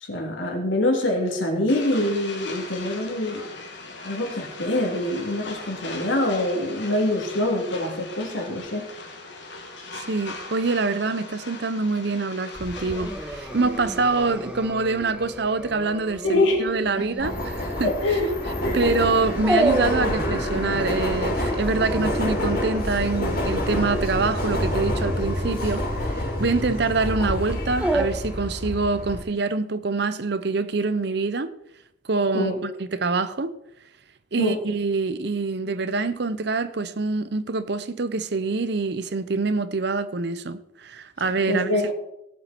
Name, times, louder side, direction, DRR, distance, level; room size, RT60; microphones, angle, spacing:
voice 1, 0.1-3.5 4.0-8.9 16.2-16.7 17.0-17.1 17.8-18.3 18.6-18.8 32.3-32.6 34.4-34.6 41.2-41.9, left 1 dB, 90° left, 3.2 m, -25 dB
sound 1, 1.7-14.7, left 3 dB, 70° left, 2.2 m, -39 dB
voice 2, 9.9-17.9 18.7-31.5 32.1-33.5 34.3-41.9, right 3 dB, 60° right, 0.8 m, -25 dB
Dog, 12.5-28.1, right 1 dB, 5° right, 0.9 m, -31 dB
Subway metro underground, 17.2-29.2, left 1 dB, 50° left, 3.6 m, -27 dB
17.5 x 7.5 x 4.5 m
head